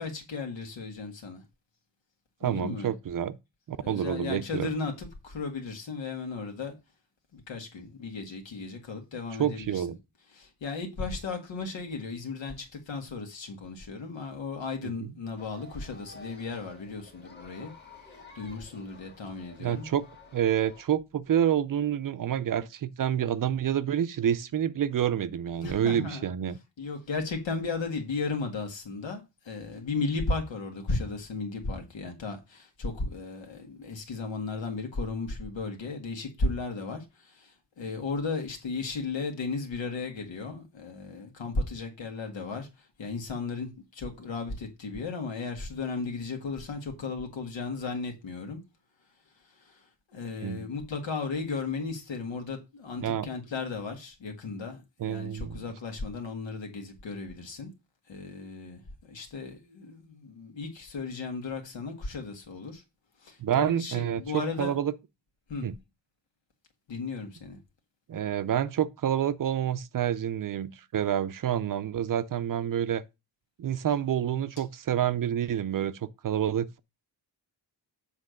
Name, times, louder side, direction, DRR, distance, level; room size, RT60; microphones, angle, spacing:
voice 1, 0.0-1.4 2.4-2.9 3.8-6.8 7.3-9.8 10.3-17.7 18.4-19.9 25.6-26.2 26.8-48.6 49.6-49.8 50.1-57.7 58.1-62.8 63.2-64.8 65.5-65.7 66.9-67.6, left 4 dB, 80° left, 1.9 m, -35 dB
voice 2, 2.4-3.4 3.7-4.7 9.4-10.0 14.8-15.1 19.6-20.1 20.3-26.6 50.4-50.7 53.0-53.3 55.0-55.6 63.4-64.9 65.6-65.7 68.1-73.0 73.6-76.8, right 9 dB, 50° right, 0.5 m, -28 dB
sound 1, 15.4-20.8, left 2 dB, 25° left, 1.8 m, -51 dB
7.5 x 3.3 x 6.4 m
wide cardioid pair, 130°, 44 cm